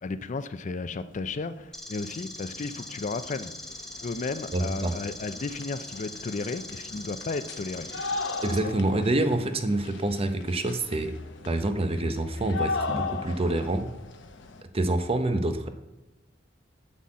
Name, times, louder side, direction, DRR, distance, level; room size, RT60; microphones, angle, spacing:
voice 1, 0.0-3.5 4.0-7.9 8.6-8.7, left 3 dB, 40° left, 12 dB, 0.4 m, -34 dB
sound 1, 1.6-1.7 1.9-14.6, left 4 dB, 70° left, 0.9 m, -38 dB
sound 2, 1.7-8.6, left 1 dB, ahead, 1.0 m, -41 dB
voice 2, 4.5-4.9 8.4-11.1 11.4-13.9 14.7-15.7, right 2 dB, 30° right, 8 dB, 0.8 m, -27 dB
9.6 x 4.1 x 7.5 m, 1.0 s
head